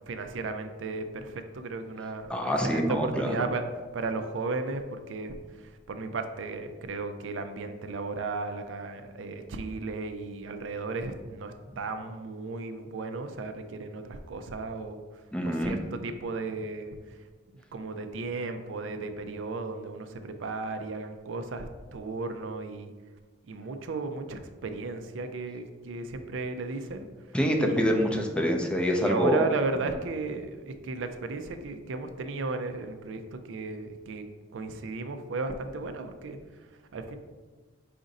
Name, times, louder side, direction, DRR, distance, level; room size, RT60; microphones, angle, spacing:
voice 1, 0.1-2.3 2.6-3.6 3.9-15.0 15.4-17.0 17.5-22.9 23.5-27.1 27.7-28.2 29.0-36.4 36.9-37.2, right 3 dB, 90° right, 7 dB, 0.4 m, -35 dB
voice 2, 2.3-3.4 15.3-15.8 27.3-29.5 29.9-30.0, equal, 5° left, 2 dB, 0.4 m, -26 dB
5.0 x 2.5 x 4.0 m, 1.3 s
head